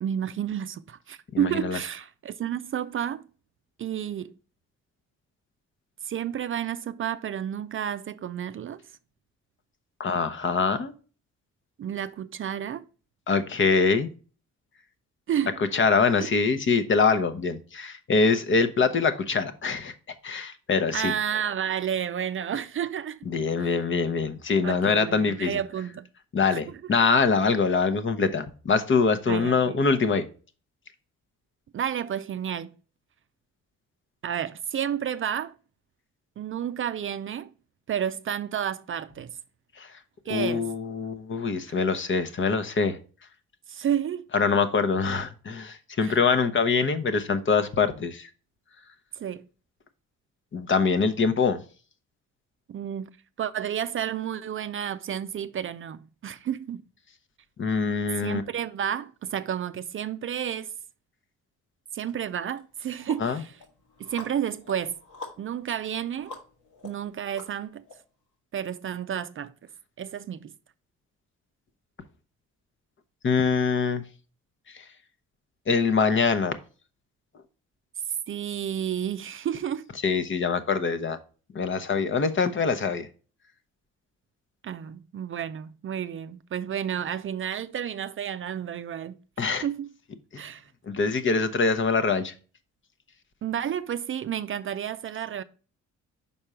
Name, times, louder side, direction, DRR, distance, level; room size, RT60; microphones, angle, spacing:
voice 1, 0.0-3.3 3.8-4.3 6.0-8.8 11.8-12.8 15.3-15.6 16.2-16.3 20.9-23.3 23.6-23.7 24.6-26.1 26.5-26.8 29.3-29.8 31.7-32.8 34.2-35.5 36.4-37.5 37.9-39.4 40.3-40.7 43.7-44.3 46.0-46.2 49.2-49.4 52.7-53.1 53.4-56.9 58.1-60.7 61.9-63.6 64.0-65.0 65.4-66.4 66.8-67.8 68.5-69.5 70.0-70.5 78.3-79.9 84.6-89.2 89.6-89.9 90.4-90.7 93.4-95.4, right 9 dB, 45° right, 0.4 m, -31 dB
voice 2, 1.3-1.8 10.0-10.9 13.3-14.1 15.7-19.9 20.2-21.1 23.3-25.6 26.3-30.3 39.8-39.9 40.3-43.0 44.3-48.3 50.5-51.6 57.6-58.4 63.2-63.4 73.2-74.0 74.7-74.8 75.7-76.6 80.0-81.2 81.5-83.1 89.4-89.6 90.3-90.4 90.9-92.3, left 5 dB, 40° left, 0.9 m, -24 dB
sound 1, 62.0-62.1 62.6-67.9, left 3 dB, 85° left, 1.9 m, -46 dB
5.5 x 4.4 x 4.8 m
cardioid pair, 90°, 30 cm